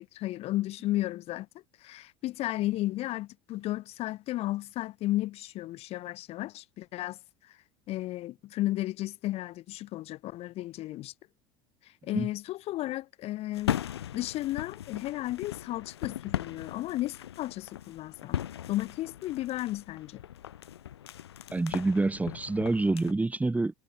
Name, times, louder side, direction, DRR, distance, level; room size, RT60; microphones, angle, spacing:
voice 1, 0.0-1.5 1.8-7.6 7.9-11.1 12.0-13.8 14.1-18.4 18.7-20.2, left 16 dB, 45° left, 4.0 m, -34 dB
sound 1, 13.5-23.1, left 11 dB, 70° left, 3.2 m, -38 dB
voice 2, 21.5-23.7, right 2 dB, 10° right, 2.5 m, -27 dB
figure-of-eight pair, 70°, 14 cm